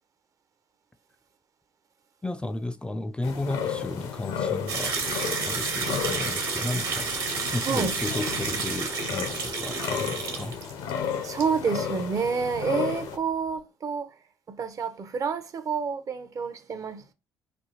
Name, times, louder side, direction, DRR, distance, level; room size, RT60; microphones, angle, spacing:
voice 1, 2.2-5.1 5.4-10.6, left 2 dB, 10° left, 0.3 m, -33 dB
sound 1, 3.2-13.2, left 7 dB, 75° left, 0.7 m, -33 dB
sound 2, 4.7-11.0 11.2-11.4, right 4 dB, 60° right, 1.2 m, -30 dB
voice 2, 11.2-14.1 14.5-17.1, right 5 dB, 45° right, 0.6 m, -29 dB
4.3 x 2.3 x 2.8 m
hypercardioid pair, 55°, 8 cm